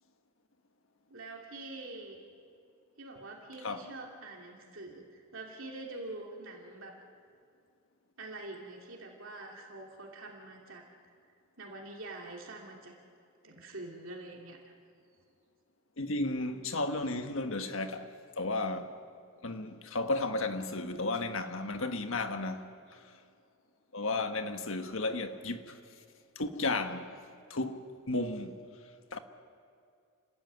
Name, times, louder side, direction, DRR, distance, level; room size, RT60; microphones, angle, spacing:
voice 1, 1.1-2.2 3.0-7.0 8.2-10.9 11.6-12.9 13.4-14.6, right 2 dB, 65° right, 2.7 m, -45 dB
voice 2, 16.0-18.1 18.4-19.0 19.4-23.0 23.9-25.8 26.3-27.1 27.5-28.5 29.1-29.2, left 2 dB, 65° left, 1.5 m, -34 dB
29.5 x 14.0 x 9.5 m
head